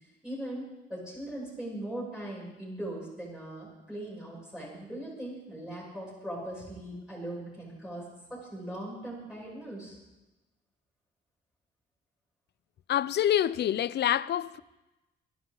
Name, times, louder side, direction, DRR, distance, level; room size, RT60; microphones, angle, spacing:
voice 1, 0.0-10.0, right 1 dB, 5° right, 7.5 m, -40 dB
voice 2, 12.9-14.6, left 11 dB, 60° left, 0.5 m, -26 dB
29.5 x 11.0 x 4.0 m
cardioid pair, 90°, 20 cm